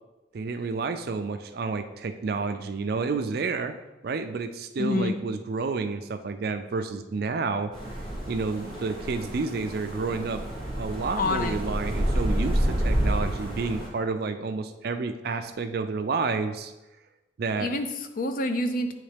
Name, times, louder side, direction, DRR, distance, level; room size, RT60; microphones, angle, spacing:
voice 1, 0.3-3.7 4.0-7.7 8.3-10.4 10.8-16.7 17.4-17.7, right 4 dB, 50° right, 8 dB, 0.4 m, -30 dB
voice 2, 4.8-5.2 11.2-11.6 17.6-18.9, left 2 dB, 45° left, 7 dB, 0.5 m, -27 dB
sound 1, 7.7-13.9, equal, 25° left, 1.8 m, -29 dB
8.9 x 3.2 x 3.3 m, 1.1 s
head